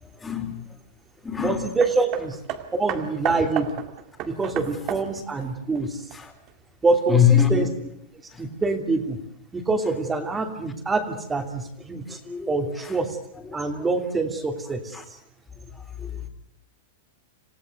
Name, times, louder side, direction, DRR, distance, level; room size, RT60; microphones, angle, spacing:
voice 1, 0.2-0.6 1.2-1.6 6.1-6.3 7.1-7.7 8.3-8.5 12.1-13.0 13.5-13.9 14.9-15.0 15.7-16.3, left 8 dB, 15° left, 5 dB, 3.8 m, -24 dB
voice 2, 1.4-2.4 2.7-3.7 4.2-6.1 6.8-7.7 8.4-9.2 9.5-12.2 12.5-13.2 13.5-15.0, right 3 dB, 15° right, 4 dB, 2.8 m, -25 dB
Hammer, 1.8-6.5 7.4-7.5, right 11 dB, 45° right, 2.1 m, -34 dB
27.5 x 15.5 x 7.8 m, 0.71 s
hypercardioid pair, 120°, 0 cm